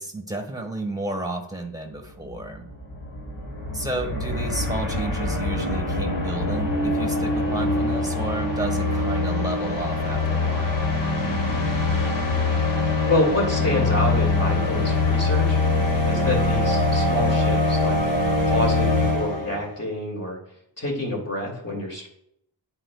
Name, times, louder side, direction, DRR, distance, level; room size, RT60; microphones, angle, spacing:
voice 1, 0.0-2.7 3.7-10.8, right 2 dB, 10° right, 3 dB, 1.4 m, -32 dB
sound 1, 2.0-2.1 2.3-19.7, left 2 dB, 80° left, 1.6 m, -23 dB
voice 2, 13.1-15.6 16.1-18.0 18.4-20.4 20.8-22.1, left 1 dB, 35° left, -1 dB, 2.6 m, -27 dB
9.9 x 4.4 x 2.4 m, 0.71 s
wide cardioid pair, 50°, 44 cm